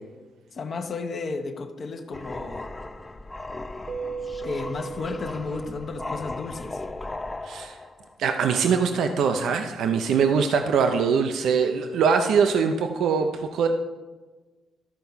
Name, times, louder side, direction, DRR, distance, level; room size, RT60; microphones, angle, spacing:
voice 1, 0.5-2.7 4.4-6.8, left 4 dB, 50° left, 5 dB, 0.9 m, -33 dB
sound 1, 2.1-8.1, left 2 dB, 20° left, 0.6 m, -37 dB
Keyboard (musical), 3.9-6.4, right 5 dB, 40° right, 1.1 m, -37 dB
voice 2, 7.4-7.8 8.2-13.7, right 6 dB, 75° right, 6 dB, 0.6 m, -22 dB
12.5 x 4.5 x 5.6 m, 1.3 s
cardioid pair, 90°, 0 cm